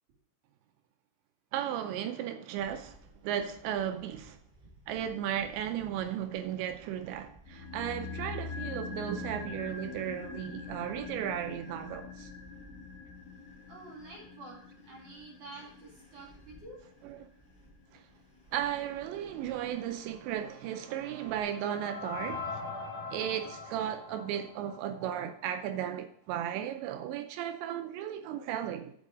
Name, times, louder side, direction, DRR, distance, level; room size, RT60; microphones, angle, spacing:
voice 1, 1.5-3.0 3.2-4.4 4.9-12.3 17.0-17.3 17.9-18.0 18.5-22.6 23.1-28.9, right 10 dB, 80° right, 2.8 m, -35 dB
sound 1, 2.6-21.4, right 2 dB, 10° right, 3.3 m, -59 dB
sound 2, 7.4-17.7 18.0-18.1, left 5 dB, 85° left, 4.1 m, -44 dB
voice 2, 13.7-14.6 14.8-16.8, right 2 dB, 50° right, 2.8 m, -48 dB
sound 3, 20.3-25.5, left 4 dB, 60° left, 1.8 m, -42 dB
8.5 x 7.5 x 5.0 m
omnidirectional pair, 5.4 m